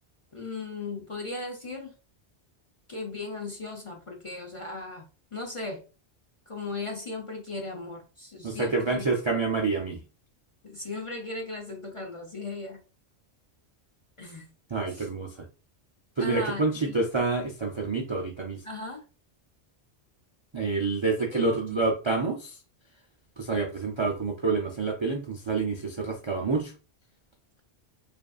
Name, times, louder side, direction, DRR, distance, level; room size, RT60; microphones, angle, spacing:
voice 1, 0.3-1.9 2.9-5.8 6.5-9.1 10.6-12.8 14.2-14.5 14.9-15.1 16.2-17.0 18.6-19.0 21.3-21.8, left 3 dB, 35° left, 1 dB, 0.6 m, -37 dB
voice 2, 8.4-10.0 14.7-15.5 16.2-18.6 20.5-22.6 23.4-26.7, right 3 dB, 45° right, 1 dB, 0.4 m, -28 dB
4.9 x 2.6 x 2.3 m, 0.33 s
omnidirectional pair, 1.2 m